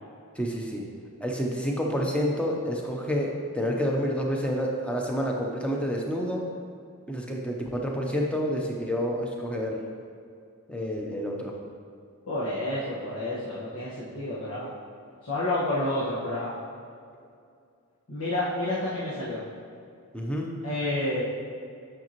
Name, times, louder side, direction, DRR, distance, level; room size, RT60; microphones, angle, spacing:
voice 1, 0.4-0.8 1.2-6.5 7.1-9.8 10.7-11.5 20.1-20.5, equal, 5° left, -1 dB, 0.7 m, -29 dB
voice 2, 12.3-14.7 15.2-16.5 18.1-19.4 20.6-21.2, left 1 dB, 75° left, -11 dB, 1.4 m, -29 dB
9.0 x 5.9 x 3.0 m, 2.4 s
head